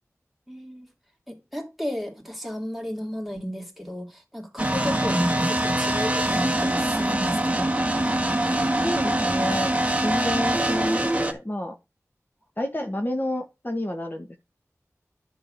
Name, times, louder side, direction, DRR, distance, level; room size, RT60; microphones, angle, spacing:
voice 1, 0.5-0.9 1.3-7.7, equal, 5° right, 3.0 m, -33 dB
sound 1, 4.6-11.3, right 1 dB, 20° right, 1.5 m, -24 dB
voice 2, 8.7-9.7 10.0-11.7 12.6-14.4, left 1 dB, 35° left, 1.5 m, -29 dB
10.0 x 4.0 x 6.5 m
wide cardioid pair, 45°, 6 cm